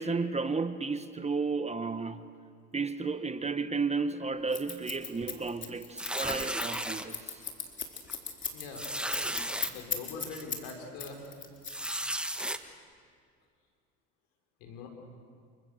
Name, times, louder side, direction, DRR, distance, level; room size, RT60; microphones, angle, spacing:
voice 1, 0.0-2.2 2.7-7.4, right 4 dB, 20° right, 11 dB, 1.2 m, -33 dB
Scissors, 4.5-10.7 11.0-12.3, left 6 dB, 35° left, 4.1 m, -36 dB
sound 1, 6.0-7.1 7.7-7.8 8.1-8.2 8.7-9.7 10.3-10.4 11.6-12.6, right 1 dB, 5° right, 1.5 m, -34 dB
voice 2, 8.5-8.9 9.7-11.2 14.6-14.9, left 4 dB, 75° left, 3 dB, 5.2 m, -42 dB
28.5 x 25.5 x 6.7 m, 2.1 s
hypercardioid pair, 75°, 34 cm